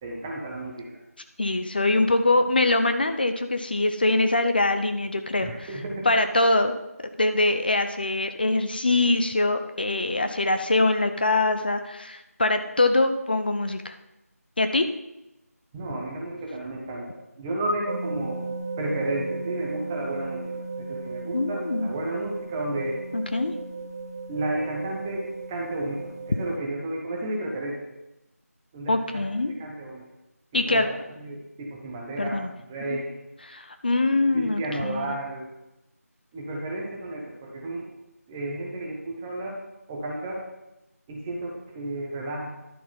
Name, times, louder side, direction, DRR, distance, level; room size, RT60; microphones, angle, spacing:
voice 1, 0.0-0.9 5.4-6.1 15.7-18.5 18.8-20.5 20.8-23.0 24.3-27.8 28.7-30.0 30.5-32.4 32.7-33.1 34.3-35.5 36.3-37.9 38.3-39.6 39.9-40.4 41.1-42.5, right 1 dB, 5° right, -2 dB, 0.7 m, -32 dB
voice 2, 1.4-5.5 6.0-6.7 7.2-13.9 14.6-14.9 21.3-21.9 23.1-23.5 28.9-29.5 30.5-30.9 32.2-32.5 32.9-33.0 33.5-35.1, left 2 dB, 35° left, 8 dB, 0.7 m, -23 dB
sound 1, 17.9-26.6, right 3 dB, 70° right, 2.4 m, -35 dB
11.5 x 7.0 x 5.6 m, 0.93 s
figure-of-eight pair, 165°, 9 cm